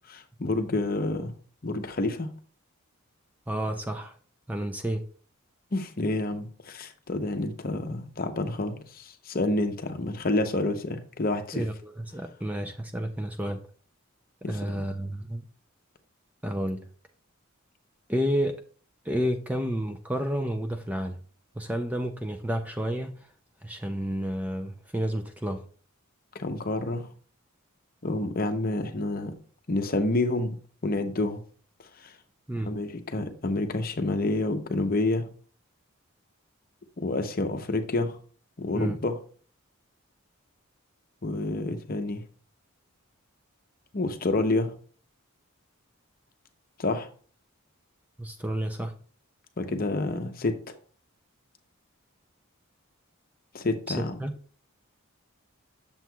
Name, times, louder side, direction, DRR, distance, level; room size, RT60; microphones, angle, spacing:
voice 1, 0.1-1.4 1.6-2.3 5.7-11.6 14.4-14.8 26.3-27.1 28.0-29.3 29.7-30.6 30.8-31.4 32.0-32.1 32.7-35.3 37.0-38.2 38.6-39.2 41.2-42.3 43.9-44.8 46.8-47.1 49.6-50.6 53.5-54.2, left 2 dB, 40° left, 0.7 m, -28 dB
voice 2, 3.5-4.1 4.5-5.0 11.5-13.6 14.5-15.4 16.4-16.8 18.1-18.6 19.0-21.2 21.6-23.2 23.6-25.6 32.5-32.7 38.7-39.0 48.2-48.9 53.9-54.3, equal, 5° right, 0.4 m, -30 dB
7.6 x 7.1 x 2.3 m
head